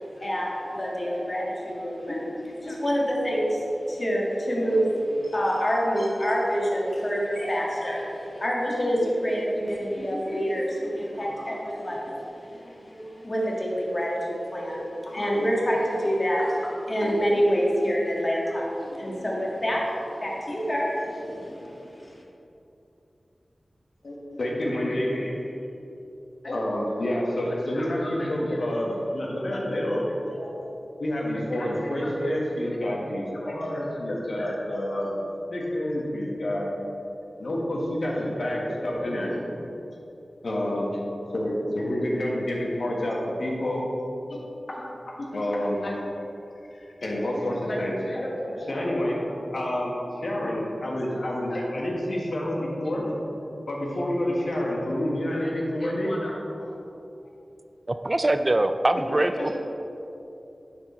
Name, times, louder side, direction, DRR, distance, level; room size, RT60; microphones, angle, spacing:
voice 1, 0.0-22.2, equal, 35° left, -4 dB, 1.8 m, -27 dB
voice 2, 24.0-25.6 26.4-30.5 31.0-35.2 35.5-36.7 37.4-39.5 40.4-40.9 41.3-43.8 44.3-44.4 44.8-44.9 45.3-46.0 46.7-53.3 53.7-56.8 59.2-59.6, left 1 dB, 75° left, -3 dB, 1.5 m, -28 dB
voice 3, 57.9-59.6, right 1 dB, 30° right, 8 dB, 0.3 m, -23 dB
10.0 x 4.7 x 4.3 m, 2.9 s
wide cardioid pair, 75°, 0 cm